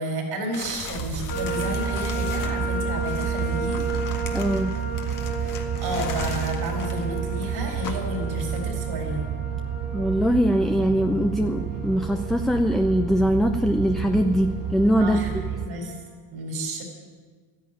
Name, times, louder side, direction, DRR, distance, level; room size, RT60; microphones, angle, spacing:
voice 1, 0.0-3.8 5.4-9.3 15.0-16.0 16.3-16.8, right 1 dB, 80° right, 2 dB, 4.2 m, -31 dB
sound 1, 0.5-8.7, left 5 dB, 55° left, 1.9 m, -38 dB
sound 2, 1.0-15.7, right 8 dB, 60° right, 1.0 m, -30 dB
sound 3, 1.3-16.0, right 2 dB, 75° left, 3.6 m, -35 dB
voice 2, 4.3-4.8 9.9-15.2, equal, ahead, 5 dB, 0.6 m, -22 dB
13.0 x 10.5 x 9.2 m, 1.5 s
cardioid pair, 105°, 38 cm